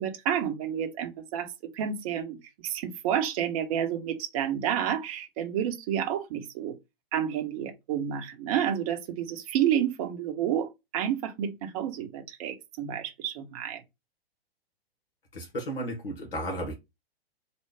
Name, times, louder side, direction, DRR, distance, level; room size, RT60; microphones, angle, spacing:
voice 1, 0.0-2.4 2.6-6.8 7.1-13.8, right 9 dB, 35° right, 0.9 m, -30 dB
voice 2, 15.3-16.7, right 1 dB, 65° left, 1.3 m, -33 dB
3.3 x 2.3 x 3.3 m
figure-of-eight pair, 110°, 31 cm